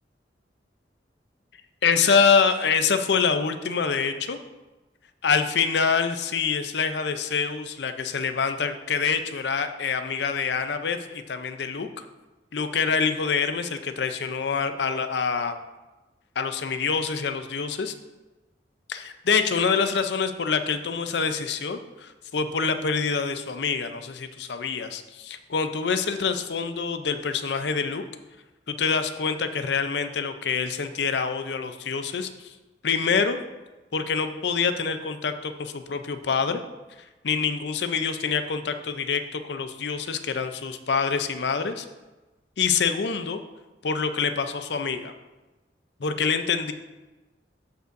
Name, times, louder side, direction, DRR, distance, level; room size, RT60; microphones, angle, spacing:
voice 1, 1.8-4.4 5.2-11.9 12.5-15.6 16.4-17.9 18.9-28.0 28.7-32.5 32.8-33.4 33.9-36.6 37.2-41.9 42.6-43.4 43.8-45.1 46.0-46.7, left 5 dB, 70° left, 9 dB, 0.6 m, -26 dB
13.0 x 5.3 x 2.6 m, 1.1 s
head